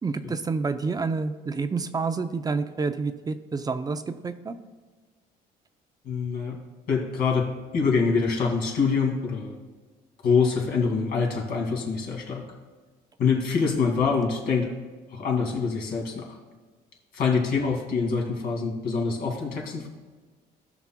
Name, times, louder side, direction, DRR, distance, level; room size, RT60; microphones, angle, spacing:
voice 1, 0.0-4.5, right 4 dB, 20° right, 10 dB, 0.5 m, -28 dB
voice 2, 6.0-6.6 6.9-7.5 7.7-9.6 10.2-12.5 13.2-14.7 15.1-16.4 17.1-19.9, left 5 dB, 65° left, -1 dB, 2.2 m, -25 dB
17.5 x 5.9 x 2.2 m, 1.4 s
cardioid pair, 110°, 17 cm